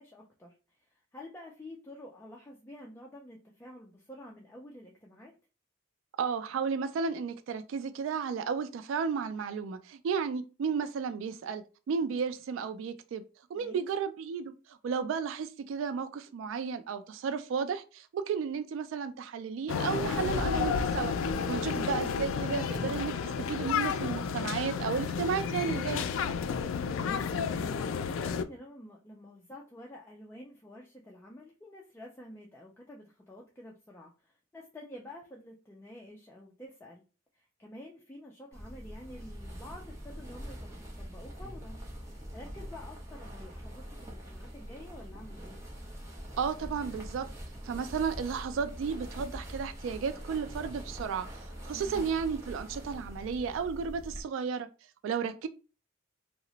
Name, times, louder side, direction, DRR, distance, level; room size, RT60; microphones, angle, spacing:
voice 1, 0.0-5.3 13.5-13.9 26.6-37.0 37.3-45.6 51.7-52.2, left 1 dB, 10° left, 0.4 m, -49 dB
voice 2, 6.2-13.2 13.5-21.1 21.5-26.1 46.4-47.3 47.6-51.3 51.6-54.7 55.0-55.5, right 6 dB, 75° right, 0.3 m, -33 dB
sound 1, 19.7-28.4, left 6 dB, 85° left, 0.3 m, -31 dB
sound 2, 38.5-54.2, equal, 15° right, 0.8 m, -43 dB
2.8 x 2.0 x 3.8 m
head